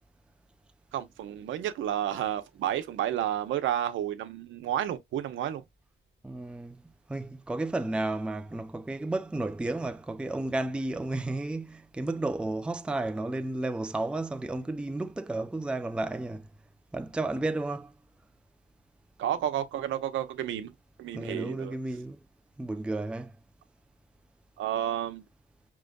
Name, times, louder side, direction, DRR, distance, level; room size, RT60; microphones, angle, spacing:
voice 1, 0.9-5.6 19.2-21.7 24.6-25.3, right 11 dB, 75° right, 0.8 m, -31 dB
voice 2, 6.2-6.8 7.1-16.5 16.9-17.9 21.1-22.2 22.6-23.3, right 2 dB, 5° right, 0.4 m, -32 dB
5.0 x 3.0 x 2.3 m
cardioid pair, 90°, 20 cm